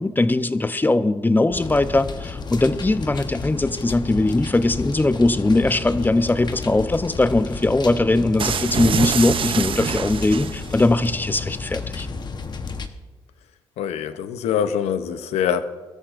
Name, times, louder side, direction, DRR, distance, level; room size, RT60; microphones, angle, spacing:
voice 1, 0.0-12.1, left 2 dB, 20° left, 12 dB, 0.7 m, -20 dB
sound 1, 1.5-12.9, left 4 dB, 45° left, 1.0 m, -32 dB
sound 2, 8.4-10.8, right 7 dB, 55° right, 0.6 m, -25 dB
voice 2, 13.8-15.6, left 8 dB, 90° left, 11 dB, 0.7 m, -24 dB
23.0 x 13.0 x 2.5 m, 1.3 s
cardioid pair, 70°, 11 cm